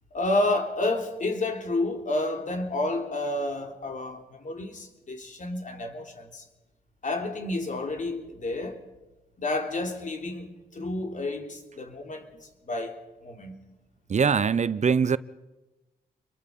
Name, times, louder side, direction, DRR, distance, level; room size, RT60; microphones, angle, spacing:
voice 1, 0.1-6.4 7.0-8.8 9.4-12.3 12.7-13.6, left 2 dB, 50° left, 3.7 m, -30 dB
voice 2, 14.1-15.2, right 6 dB, 45° right, 0.7 m, -22 dB
28.0 x 23.0 x 5.4 m
cardioid pair, 75°, 16 cm